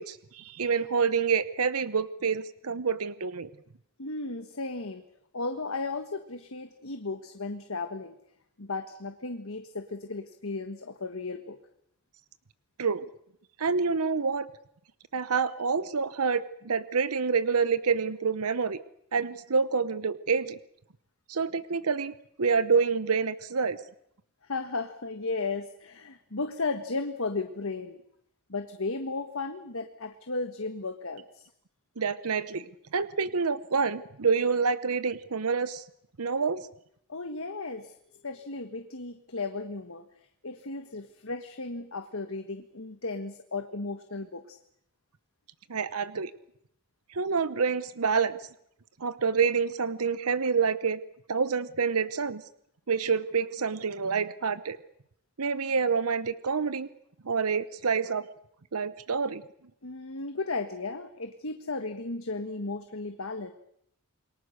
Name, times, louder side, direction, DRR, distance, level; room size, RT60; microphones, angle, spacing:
voice 1, 0.0-3.5 12.8-13.0 13.6-14.5 15.1-18.8 19.1-20.6 21.3-23.8 32.0-35.8 36.2-36.7 45.7-46.3 47.1-48.4 49.0-51.0 51.3-52.4 52.9-54.8 55.4-56.9 57.2-58.3 58.7-59.4, right 5 dB, 80° right, 15 dB, 0.9 m, -27 dB
voice 2, 4.0-5.0 5.3-8.2 8.6-11.6 24.4-28.0 28.5-31.5 37.1-37.9 38.2-40.0 40.4-44.6 59.8-63.5, left 3 dB, 65° left, 7 dB, 1.5 m, -35 dB
28.5 x 23.0 x 6.6 m, 0.73 s
head